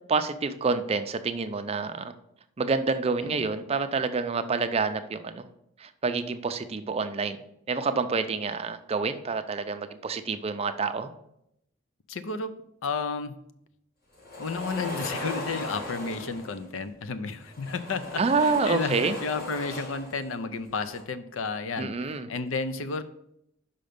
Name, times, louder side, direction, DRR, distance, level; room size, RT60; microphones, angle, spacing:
voice 1, 0.1-2.1 2.6-5.4 5.8-7.4 7.7-11.1 18.2-19.1 21.8-22.3, right 4 dB, 30° right, 9 dB, 0.4 m, -28 dB
voice 2, 12.1-12.5 12.8-13.4 14.4-23.0, left 4 dB, 75° left, 12 dB, 0.5 m, -32 dB
sound 1, 14.1-16.7 17.4-20.3 20.6-21.0, left 1 dB, 50° left, 1.7 m, -37 dB
5.6 x 5.2 x 5.1 m, 0.79 s
head